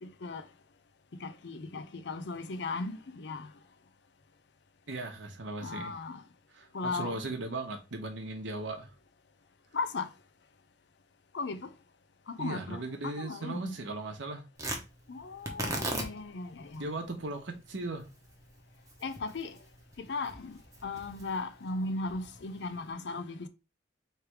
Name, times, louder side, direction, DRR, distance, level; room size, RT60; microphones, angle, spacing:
voice 1, 0.0-0.4 1.2-3.5 5.6-6.2 6.7-7.1 9.7-10.1 11.3-11.6 12.4-13.7 15.1-16.8 19.0-19.5 20.1-23.5, left 3 dB, 70° left, 0.6 m, -37 dB
voice 2, 4.9-5.9 6.5-8.9 12.4-14.4 16.8-18.0, right 2 dB, 90° right, 1.0 m, -37 dB
Tearing, 14.6-22.9, right 1 dB, 20° right, 0.9 m, -41 dB
3.3 x 3.2 x 4.6 m
head